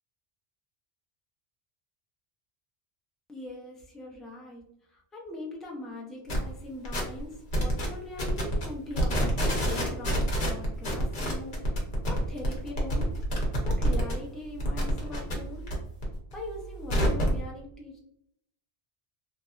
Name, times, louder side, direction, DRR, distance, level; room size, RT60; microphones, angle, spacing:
voice 1, 3.3-9.3 9.6-13.1 13.6-15.7 16.3-18.0, left 2 dB, ahead, -2 dB, 0.4 m, -41 dB
sound 1, 6.3-6.4 6.8-7.2 7.5-7.9 8.2-8.7 8.9-14.1 14.5-15.7 16.0-17.4, equal, 55° left, 1.0 m, -28 dB
3.2 x 2.6 x 2.4 m, 0.74 s
omnidirectional pair, 1.1 m